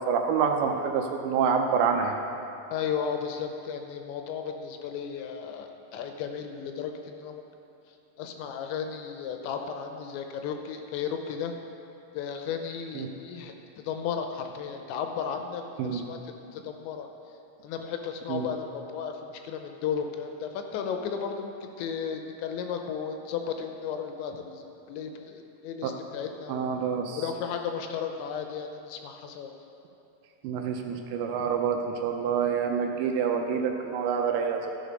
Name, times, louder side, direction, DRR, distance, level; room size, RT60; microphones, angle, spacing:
voice 1, 0.0-2.2 13.0-13.1 15.8-16.0 18.3-18.5 25.8-25.9 26.5-27.3 30.4-34.7, right 6 dB, 80° right, 4 dB, 2.7 m, -27 dB
voice 2, 2.7-7.4 8.2-11.5 12.1-13.5 13.8-15.6 15.9-17.1 17.6-26.7 27.2-29.5, left 7 dB, 80° left, 5 dB, 2.9 m, -34 dB
13.5 x 6.7 x 5.2 m, 2.8 s
omnidirectional pair, 5.4 m